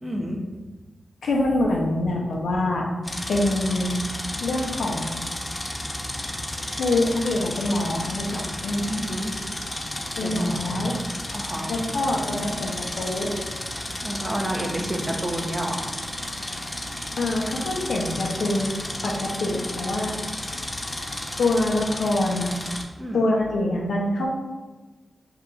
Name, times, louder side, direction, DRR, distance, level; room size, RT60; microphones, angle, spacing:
voice 1, 0.0-0.4 8.9-9.3 10.2-10.9 11.3-11.7 14.0-15.8 23.0-23.2, right 1 dB, 30° right, 0 dB, 0.7 m, -29 dB
voice 2, 1.2-2.9 3.3-3.9 4.4-5.1 6.8-8.9 10.2-11.0 11.7-13.4 17.2-18.7 19.0-20.2 21.4-22.5 23.1-24.3, left 2 dB, 85° left, -1 dB, 0.6 m, -25 dB
sound 1, 3.0-22.8, left 1 dB, 30° left, 0.5 m, -32 dB
2.9 x 2.4 x 3.7 m, 1.2 s
cardioid pair, 45°, 0 cm